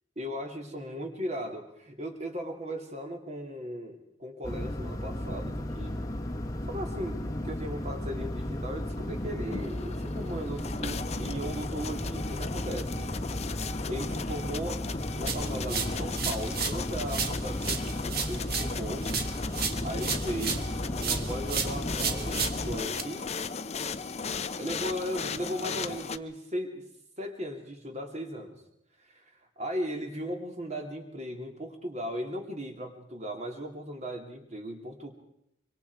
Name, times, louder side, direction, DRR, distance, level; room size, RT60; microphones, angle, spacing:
voice 1, 0.2-5.9 6.7-13.1 13.9-14.8 15.2-19.1 19.8-23.3 24.6-26.8 27.2-28.6 29.0-29.3 29.6-35.1, equal, 35° right, 3 dB, 2.8 m, -37 dB
sound 1, 4.4-22.8, left 1 dB, 20° left, 1.2 m, -35 dB
sound 2, 9.3-26.2, left 5 dB, 35° left, 0.7 m, -37 dB
sound 3, 15.3-16.8 17.1-20.7 21.0-23.0, right 6 dB, 55° right, 1.9 m, -33 dB
24.5 x 24.5 x 4.7 m, 0.77 s
head